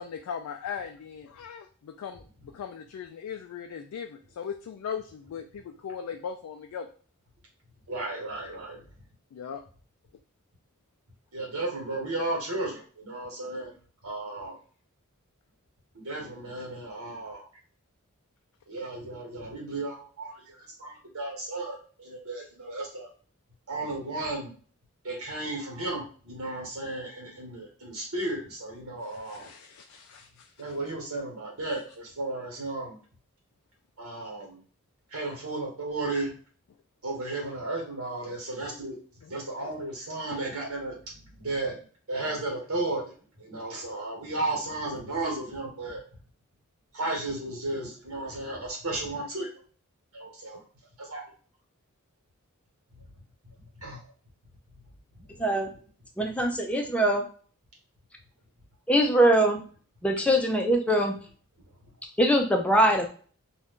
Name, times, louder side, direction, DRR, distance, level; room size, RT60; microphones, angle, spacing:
voice 1, 0.0-6.9 9.3-9.6 29.0-30.8 37.4-37.5 39.2-39.7 40.3-40.4, left 7 dB, 80° left, 4 dB, 0.3 m, -39 dB
voice 2, 7.9-8.8 11.3-13.7 14.0-14.6 16.0-17.4 18.7-23.1 23.7-24.5 25.0-29.5 30.6-33.0 34.0-34.6 35.1-36.3 37.0-39.0 39.3-41.0 41.4-41.8 42.1-43.0 43.4-46.0 46.9-49.5 50.1-50.6 51.0-51.2 53.8-54.0, right 2 dB, 70° right, -1 dB, 1.2 m, -34 dB
voice 3, 55.4-55.7 56.2-57.2 58.9-59.6 60.0-61.1 62.2-63.1, right 1 dB, 5° left, 2 dB, 0.4 m, -22 dB
2.5 x 2.2 x 3.5 m, 0.42 s
head